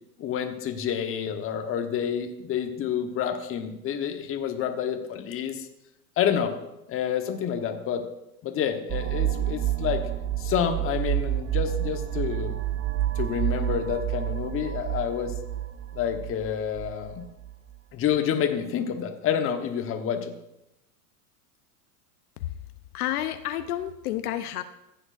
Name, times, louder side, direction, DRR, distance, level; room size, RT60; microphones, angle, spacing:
voice 1, 0.2-5.7 6.2-6.6 6.9-8.0 8.4-10.1 10.4-12.5 13.1-15.3 15.9-17.2 17.9-20.3, left 8 dB, 30° left, 5 dB, 1.1 m, -28 dB
sound 1, 8.9-17.5, right 13 dB, 35° right, 0.6 m, -29 dB
voice 2, 22.9-24.6, left 12 dB, 75° left, 9 dB, 0.8 m, -30 dB
14.5 x 9.0 x 2.6 m, 0.88 s
supercardioid pair, 125°, 45 cm